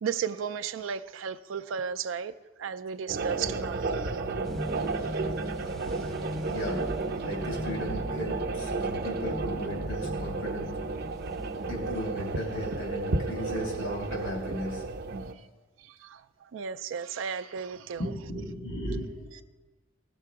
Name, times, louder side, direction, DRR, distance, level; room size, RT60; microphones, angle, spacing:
voice 1, 0.0-2.3 2.6-4.2 4.9-5.2 5.6-5.8 6.4-6.5 8.8-8.9 15.3-15.5 15.8-18.0, right 7 dB, 90° right, 10 dB, 0.4 m, -35 dB
sound 1, 3.1-15.3, right 3 dB, 55° right, 0.6 m, -32 dB
sound 2, 4.4-12.3, equal, ahead, 0.5 m, -40 dB
voice 2, 6.5-6.8 7.2-10.7 11.7-14.8 18.0-19.4, equal, 85° left, 0 dB, 2.9 m, -36 dB
17.0 x 6.8 x 4.7 m, 1.3 s
head